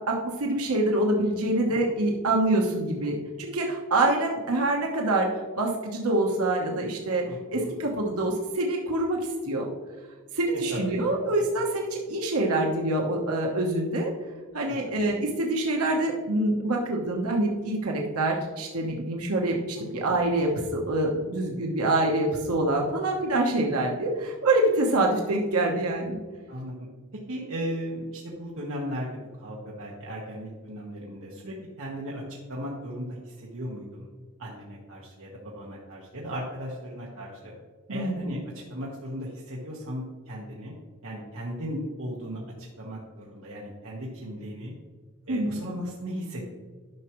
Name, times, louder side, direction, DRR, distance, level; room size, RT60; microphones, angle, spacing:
voice 1, 0.1-5.3 5.6-7.2 7.5-9.2 9.4-9.7 10.3-14.1 14.5-26.2 37.9-38.2 45.3-45.6, right 2 dB, 85° right, 0 dB, 1.0 m, -25 dB
voice 2, 7.3-7.7 10.7-11.0 14.7-14.9 19.9-20.1 26.5-26.9 27.3-32.2 32.5-34.1 34.4-37.5 37.9-38.4 38.7-40.7 41.0-44.7 45.3-46.5, equal, 65° right, -4 dB, 1.3 m, -36 dB
10.5 x 6.1 x 3.0 m, 1.4 s
head